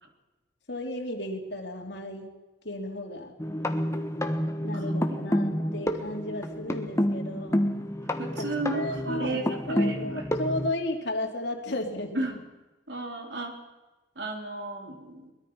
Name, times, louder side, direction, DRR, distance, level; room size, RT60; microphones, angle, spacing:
voice 1, 0.7-2.3 2.6-3.3 4.6-7.7 8.4-8.5 8.7-9.4 9.7-12.2, left 1 dB, 60° left, 2 dB, 3.3 m, -33 dB
sound 1, 3.4-10.7, equal, 15° left, 1.3 m, -29 dB
voice 2, 4.7-5.2 8.2-10.3 12.1-12.4 12.9-13.5 14.2-15.3, right 2 dB, 60° right, 3 dB, 4.0 m, -34 dB
22.5 x 21.5 x 5.7 m, 1.1 s
head